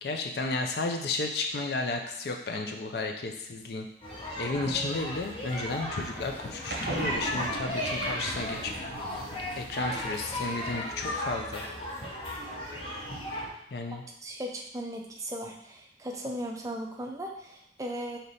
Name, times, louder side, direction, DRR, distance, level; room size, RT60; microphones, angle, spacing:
voice 1, 0.0-3.9 4.4-8.7 9.6-11.6 13.7-14.0, left 3 dB, 70° left, 4 dB, 0.5 m, -33 dB
sound 1, 4.0-13.5, left 1 dB, 30° left, 0.7 m, -35 dB
sound 2, 6.7-11.4, right 3 dB, 70° right, 0.5 m, -40 dB
voice 2, 14.2-18.2, equal, 20° right, 1 dB, 0.4 m, -37 dB
3.3 x 2.9 x 4.0 m, 0.76 s
head